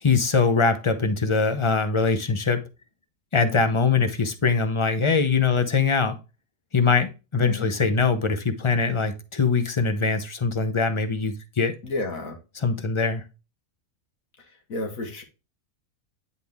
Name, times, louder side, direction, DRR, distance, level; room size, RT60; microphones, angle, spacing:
voice 1, 0.0-2.6 3.3-6.2 6.7-11.7 12.6-13.2, left 4 dB, 30° left, 0.7 m, -22 dB
voice 2, 11.8-12.4 14.4-15.2, left 2 dB, 85° left, 1.9 m, -32 dB
9.8 x 4.1 x 3.5 m
omnidirectional pair, 1.4 m